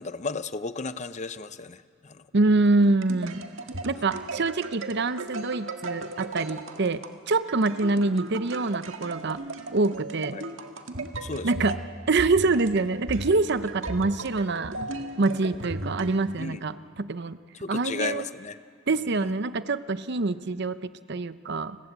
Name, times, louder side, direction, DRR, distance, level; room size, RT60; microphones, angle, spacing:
voice 1, 0.0-2.3 10.3-10.5 11.2-11.7 16.4-16.6 17.5-18.6 19.0-19.3, left 4 dB, 35° left, 13 dB, 0.7 m, -34 dB
voice 2, 2.3-3.4 3.8-9.4 9.7-10.4 11.4-11.8 12.1-14.9 15.2-16.7 17.0-17.4 17.7-18.2 18.9-21.8, right 3 dB, 55° right, 13 dB, 0.8 m, -25 dB
sound 1, 2.7-16.6, right 2 dB, 75° right, 1.8 m, -37 dB
30.0 x 20.5 x 8.2 m, 2.1 s
head